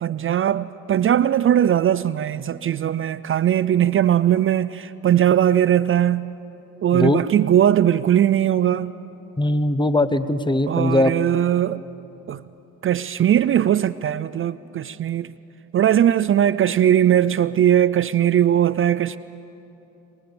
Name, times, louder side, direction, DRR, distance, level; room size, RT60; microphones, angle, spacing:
voice 1, 0.0-6.3 6.8-8.9 10.7-11.8 12.3-12.4 12.8-15.3 15.7-19.2, right 10 dB, 45° right, 0.4 m, -19 dB
voice 2, 9.4-11.1, left 1 dB, 15° left, 0.9 m, -20 dB
23.5 x 20.5 x 6.9 m
cardioid pair, 90°, 30 cm